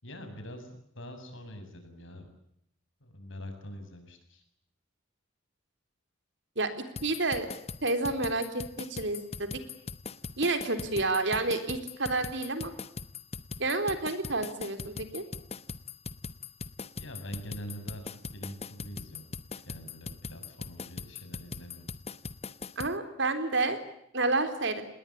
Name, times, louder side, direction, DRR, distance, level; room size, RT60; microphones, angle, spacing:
voice 1, 0.0-2.3 3.0-4.4 17.0-19.3 19.7-21.9, equal, 65° left, 6 dB, 7.4 m, -44 dB
sound 1, 7.0-22.9, left 4 dB, 30° left, 1.1 m, -40 dB
voice 2, 7.0-7.5 7.8-9.5 10.4-12.7 13.6-15.2 22.8-23.8 24.1-24.8, right 2 dB, 60° right, 8 dB, 3.9 m, -29 dB
28.5 x 20.5 x 8.7 m, 0.74 s
head